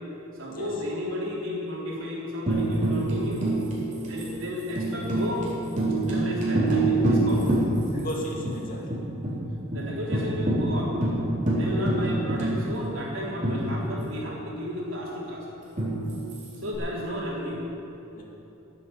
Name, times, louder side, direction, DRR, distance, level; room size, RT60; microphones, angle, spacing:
voice 1, 0.3-3.5 4.0-5.5 6.1-7.5 9.7-11.0 11.5-15.5 16.6-17.6, left 1 dB, 70° right, -4 dB, 3.8 m, -33 dB
Tambourine, 2.5-8.1 8.4-8.5 8.9-9.4 9.7-9.8 10.1-14.2 15.8-16.7, right 1 dB, 35° right, 4.0 m, -26 dB
voice 2, 7.9-9.0 18.2-18.3, equal, 45° left, -1 dB, 2.3 m, -35 dB
15.0 x 8.5 x 8.0 m, 3.0 s
head